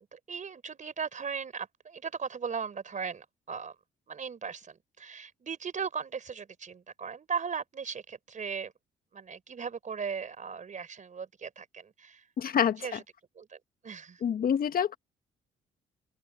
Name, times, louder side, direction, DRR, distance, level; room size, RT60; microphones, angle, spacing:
voice 1, 0.0-3.7 4.1-8.7 9.1-12.2 12.7-13.0 13.3-14.2, right 6 dB, 45° right, 4.4 m, -38 dB
voice 2, 12.4-13.0 14.2-15.0, left 8 dB, 55° left, 1.7 m, -27 dB
open air
hypercardioid pair, 55°, 18 cm